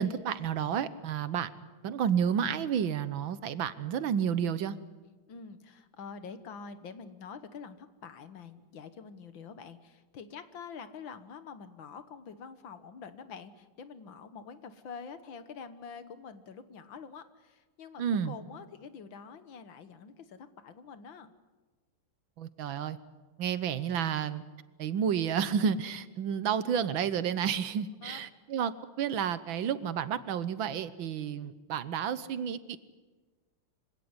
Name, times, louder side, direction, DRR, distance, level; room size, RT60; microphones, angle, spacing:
voice 1, 0.0-1.5 1.8-4.8 18.0-18.3 22.4-23.0 23.4-24.4 24.8-32.8, right 8 dB, 70° right, 15 dB, 1.6 m, -31 dB
voice 2, 5.3-21.3 28.0-28.2, left 6 dB, 65° left, 11 dB, 2.0 m, -46 dB
25.5 x 17.0 x 9.7 m, 1.3 s
omnidirectional pair, 2.3 m